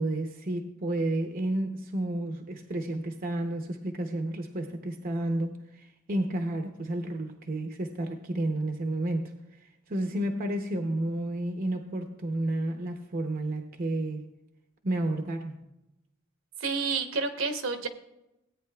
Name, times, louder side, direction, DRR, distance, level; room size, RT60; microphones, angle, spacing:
voice 1, 0.0-9.3 9.9-14.3 14.8-15.6, right 1 dB, 45° right, 5 dB, 0.7 m, -31 dB
voice 2, 16.6-17.9, right 4 dB, 70° right, 7 dB, 1.0 m, -29 dB
17.0 x 8.7 x 2.3 m, 0.91 s
head